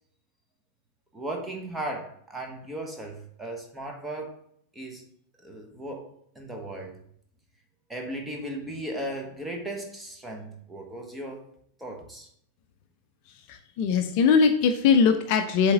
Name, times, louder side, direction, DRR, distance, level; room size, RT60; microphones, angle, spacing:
voice 1, 1.1-4.4 4.7-5.0 5.4-7.0 7.9-11.4 11.8-12.3, right 1 dB, 10° right, 2 dB, 1.3 m, -36 dB
voice 2, 13.5-15.7, left 6 dB, 45° left, 7 dB, 0.5 m, -21 dB
7.6 x 3.5 x 4.0 m, 0.69 s
figure-of-eight pair, 90°, 0 cm